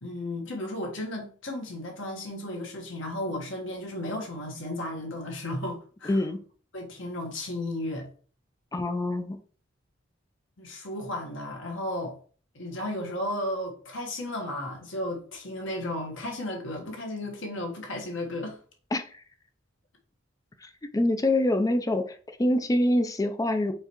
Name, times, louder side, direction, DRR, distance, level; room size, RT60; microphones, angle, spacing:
voice 1, 0.0-6.2 6.7-8.1 10.6-12.2 12.5-18.6, left 1 dB, 75° left, 1.3 m, -34 dB
voice 2, 6.0-6.4 8.7-9.4 18.9-19.0 20.6-23.7, left 1 dB, 20° left, 0.4 m, -25 dB
4.7 x 3.3 x 3.0 m
head